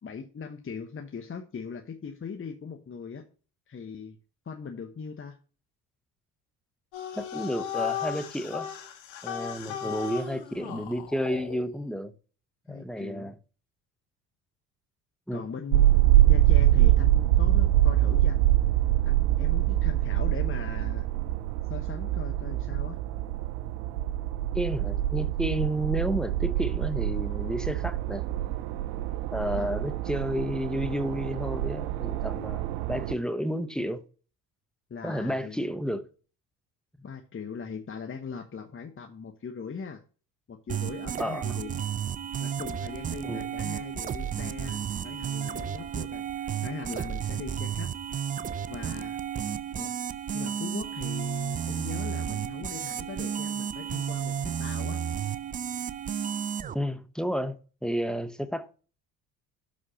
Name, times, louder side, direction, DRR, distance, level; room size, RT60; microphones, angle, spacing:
voice 1, 0.0-3.2 3.7-4.2 4.4-5.4 9.7-9.9 12.7-13.3 15.3-16.0 16.3-18.4 19.0-21.1 21.7-23.0 29.5-29.7 34.9-35.6 37.0-40.0 40.5-41.8 42.4-47.9 48.7-49.2 49.8-49.9 50.3-55.0, left 6 dB, 25° left, 1.0 m, -40 dB
sound 1, 6.9-11.6, left 10 dB, 70° left, 1.9 m, -36 dB
voice 2, 7.1-8.7 9.2-12.1 12.7-13.4 15.3-15.5 24.5-28.2 29.3-34.0 35.0-36.1 41.2-41.5 43.2-43.5 56.7-58.7, equal, ahead, 0.9 m, -31 dB
sound 2, 15.7-33.1, right 14 dB, 80° right, 0.6 m, -25 dB
sound 3, 40.7-56.7, right 8 dB, 20° right, 0.3 m, -32 dB
12.0 x 4.3 x 2.9 m
hypercardioid pair, 55°, 47 cm